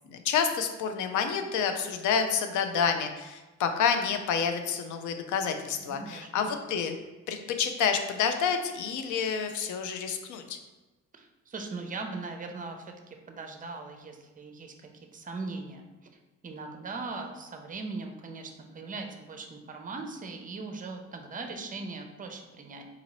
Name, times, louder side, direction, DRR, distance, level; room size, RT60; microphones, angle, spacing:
voice 1, 0.1-6.9 7.3-10.6, left 6 dB, 80° left, 7 dB, 0.5 m, -29 dB
voice 2, 5.8-6.5 11.1-15.8 16.4-22.8, right 3 dB, 25° right, 4 dB, 0.5 m, -40 dB
4.0 x 2.6 x 3.0 m, 1.2 s
cardioid pair, 90°, 30 cm